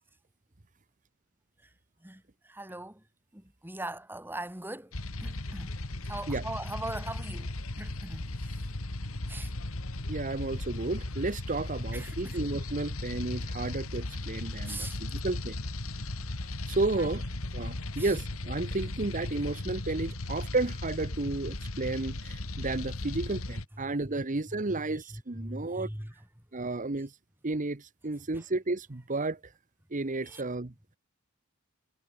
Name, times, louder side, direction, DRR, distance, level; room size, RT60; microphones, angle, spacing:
voice 1, 2.0-3.0 3.3-4.9 5.2-5.8 6.0-7.5 7.8-8.6 9.3-9.5 11.9-12.4 13.5-13.6 14.7-15.0 16.9-17.2 18.0-18.2 23.8-26.1 28.3-28.4 30.2-30.4, right 1 dB, 10° right, 2.8 m, -41 dB
sound 1, 4.9-23.7, left 2 dB, 80° left, 2.1 m, -36 dB
voice 2, 10.1-15.6 16.7-25.9 26.5-27.1 27.4-29.4 29.9-30.7, right 2 dB, 35° right, 1.0 m, -32 dB
head